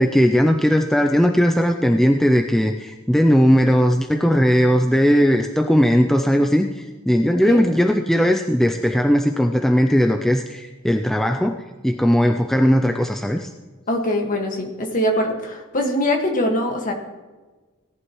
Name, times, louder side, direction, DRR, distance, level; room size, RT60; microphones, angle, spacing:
voice 1, 0.0-13.5, equal, ahead, 4 dB, 0.4 m, -18 dB
voice 2, 13.9-16.9, left 1 dB, 40° left, 2 dB, 1.7 m, -22 dB
17.5 x 11.0 x 3.1 m, 1.3 s
head